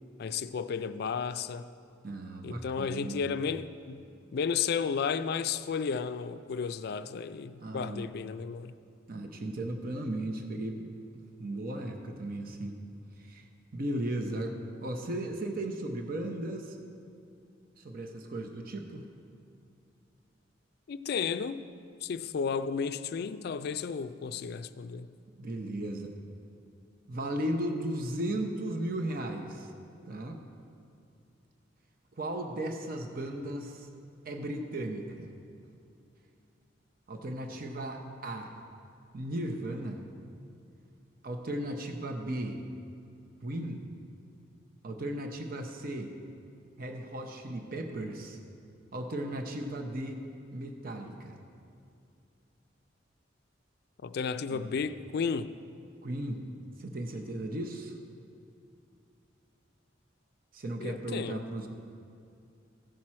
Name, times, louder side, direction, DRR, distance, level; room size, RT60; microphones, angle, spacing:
voice 1, 0.2-1.7 2.4-4.0 4.3-8.7 20.9-21.6 22.0-25.1 54.0-55.5 60.8-61.5, left 6 dB, 60° left, 0.3 m, -33 dB
voice 2, 2.0-3.2 7.6-8.1 9.1-10.9 11.4-12.8 13.2-13.4 13.7-16.8 17.8-19.1 25.4-26.1 27.1-29.7 30.1-30.4 32.2-33.9 34.2-35.3 37.1-38.5 39.1-40.0 41.2-42.6 43.4-43.8 44.8-46.1 46.8-48.4 48.9-50.2 50.5-51.4 54.5-54.7 56.0-56.4 56.8-57.9 60.5-61.7, right 1 dB, 50° right, 0.7 m, -36 dB
15.0 x 6.1 x 4.3 m
head